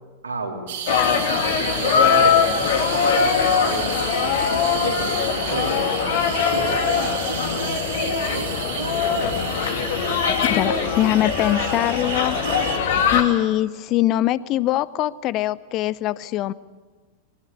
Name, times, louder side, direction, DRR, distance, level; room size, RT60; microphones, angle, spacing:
voice 1, 0.2-0.7 1.8-3.2 3.7-4.2 4.8-5.1 5.5-5.9 6.4-7.8 8.1-9.5, right 2 dB, 75° right, 2 dB, 3.2 m, -33 dB
sound 1, 0.7-12.8, right 7 dB, 55° right, 3.3 m, -32 dB
sound 2, 0.9-13.2, left 6 dB, 60° left, 2.4 m, -22 dB
voice 2, 10.4-12.4 13.1-16.5, left 14 dB, 35° left, 20 dB, 0.6 m, -22 dB
21.0 x 19.0 x 8.3 m, 1.4 s
figure-of-eight pair, 90°, 0 cm